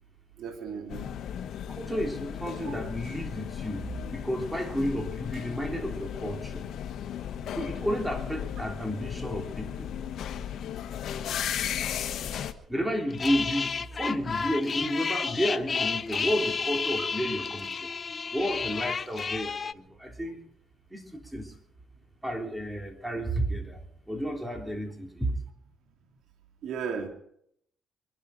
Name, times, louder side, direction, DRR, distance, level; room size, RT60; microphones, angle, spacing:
voice 1, 0.4-1.1 2.6-2.7 17.0-17.1 26.6-27.1, right 6 dB, 75° right, 4 dB, 2.5 m, -35 dB
sound 1, 0.9-12.5, left 9 dB, 75° left, 1.1 m, -35 dB
voice 2, 1.7-6.7 7.5-9.9 12.7-17.9 18.3-20.5 20.9-21.5 22.2-23.8 24.1-25.3, equal, 10° right, 3 dB, 3.6 m, -31 dB
sound 2, 13.1-19.7, left 5 dB, 40° left, 0.6 m, -31 dB
24.0 x 11.0 x 5.2 m, 0.70 s
cardioid pair, 90°, 0 cm